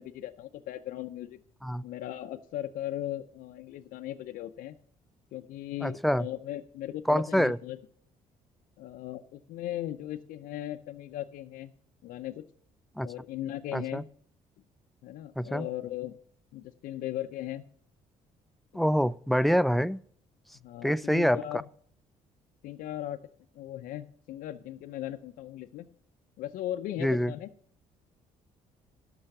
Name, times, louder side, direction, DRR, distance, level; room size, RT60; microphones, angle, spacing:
voice 1, 0.0-1.4 1.8-4.8 5.3-7.8 8.8-11.7 12.0-12.4 13.0-14.0 15.0-16.1 16.5-17.6 18.7-18.8 20.5-21.6 22.6-23.2 23.5-25.9 26.4-27.5, left 13 dB, 80° left, 0.5 m, -38 dB
voice 2, 5.8-6.3 7.1-7.6 13.0-13.1 13.7-14.0 15.4-15.7 18.7-20.0 20.8-21.4 27.0-27.3, equal, ahead, 0.4 m, -26 dB
12.0 x 5.6 x 6.5 m
cardioid pair, 80°, 14 cm